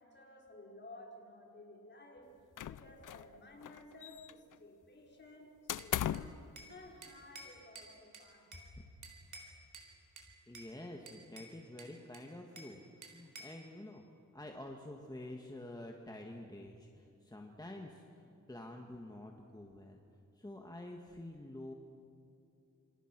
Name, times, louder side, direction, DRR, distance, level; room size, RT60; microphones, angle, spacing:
voice 1, 0.0-8.7, left 2 dB, 35° left, 0 dB, 4.9 m, -55 dB
sound 1, 2.6-3.3 3.6-4.5 5.7-6.4, left 10 dB, 85° left, 0.6 m, -38 dB
Bell / Glass, 5.8-6.8 7.0-8.7 9.0-9.9 10.2-10.7 11.1-12.8 13.0-13.6, right 2 dB, 80° right, 4.2 m, -53 dB
voice 2, 10.5-14.0 14.3-20.0 20.3-21.7, left 1 dB, 15° left, 1 dB, 1.8 m, -48 dB
27.5 x 27.0 x 6.1 m, 2.8 s
wide cardioid pair, 120°, 31 cm